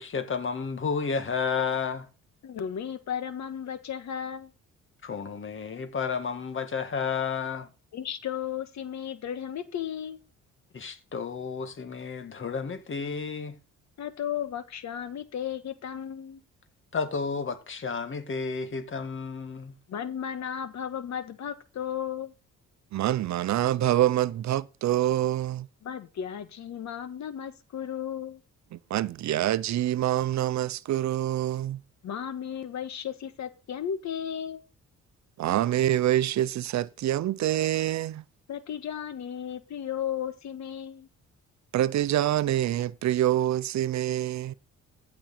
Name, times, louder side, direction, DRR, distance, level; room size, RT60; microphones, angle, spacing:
voice 1, 0.0-2.1 5.0-7.7 10.7-13.6 16.9-19.7, left 5 dB, 40° left, 2.0 m, -31 dB
voice 2, 2.4-4.5 7.9-10.2 14.0-16.4 19.9-22.3 25.8-28.4 32.0-34.6 38.5-41.1, left 9 dB, 65° left, 1.6 m, -34 dB
voice 3, 22.9-25.7 28.9-31.8 35.4-38.2 41.7-44.5, right 13 dB, 65° right, 0.7 m, -26 dB
15.5 x 6.2 x 4.4 m
cardioid pair, 90°, 30 cm